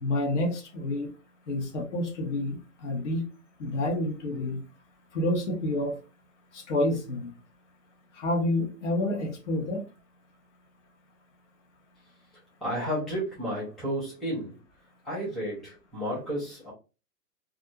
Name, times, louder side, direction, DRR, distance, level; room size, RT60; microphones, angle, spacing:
voice 1, 0.0-1.1 1.5-3.2 3.6-4.6 5.1-6.0 6.5-7.3 8.2-9.8, left 1 dB, 50° left, 0.8 m, -29 dB
voice 2, 12.6-14.6 15.0-16.7, equal, ahead, 0.3 m, -32 dB
2.4 x 2.1 x 2.7 m
hypercardioid pair, 160°, 48 cm